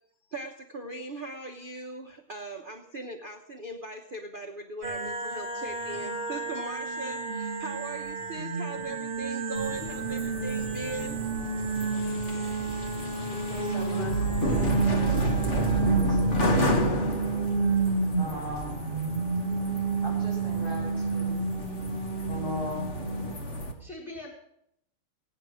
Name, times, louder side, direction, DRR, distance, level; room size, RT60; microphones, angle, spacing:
voice 1, 0.3-11.2, right 2 dB, 65° right, 3 dB, 0.5 m, -39 dB
sound 1, 4.8-23.3, right 4 dB, 30° right, 1.2 m, -30 dB
sound 2, 9.6-23.7, equal, 35° left, 1.5 m, -31 dB
voice 2, 13.5-19.7 20.0-21.3 22.3-23.0, left 1 dB, 70° left, -4 dB, 7.4 m, -41 dB
voice 3, 22.9-24.3, left 1 dB, ahead, -3 dB, 4.3 m, -44 dB
17.5 x 9.5 x 6.3 m, 0.74 s
omnidirectional pair, 2.4 m